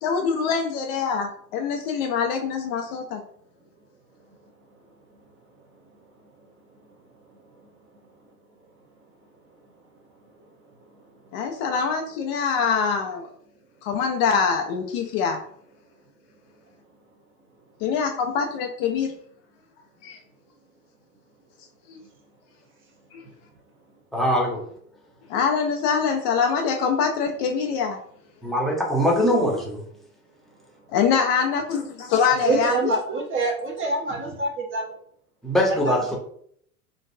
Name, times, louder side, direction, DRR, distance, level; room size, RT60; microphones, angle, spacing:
voice 1, 0.0-3.2 11.3-13.3 13.8-15.4 17.8-19.1 20.0-20.2 21.9-22.0 23.1-23.2 25.3-28.0 30.9-32.9, left 6 dB, 45° left, 4 dB, 0.5 m, -24 dB
voice 2, 24.1-24.6 28.4-29.8 35.4-36.2, equal, ahead, -2 dB, 1.0 m, -22 dB
voice 3, 32.4-34.8 35.8-36.2, right 3 dB, 30° right, 1 dB, 0.9 m, -26 dB
3.8 x 2.5 x 2.6 m, 0.65 s
hypercardioid pair, 85°, 44 cm